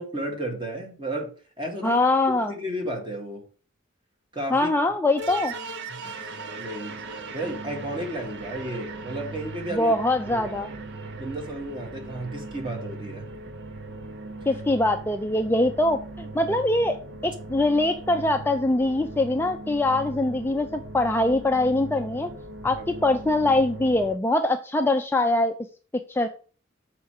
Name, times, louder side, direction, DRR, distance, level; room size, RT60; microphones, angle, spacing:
voice 1, 0.0-2.0 2.3-3.4 4.3-4.7 5.9-6.3 6.6-7.0 7.3-9.9 10.3-10.5 11.2-13.3 22.7-22.9, right 1 dB, 25° right, 2 dB, 2.0 m, -33 dB
voice 2, 1.8-2.5 4.5-5.5 9.7-10.7 14.5-17.0 17.2-22.3 22.6-22.8 23.0-25.6 25.9-26.3, left 2 dB, 10° left, 6 dB, 0.4 m, -23 dB
sound 1, 5.2-24.2, right 3 dB, 60° right, 0.8 m, -39 dB
6.8 x 4.5 x 6.4 m, 0.39 s
head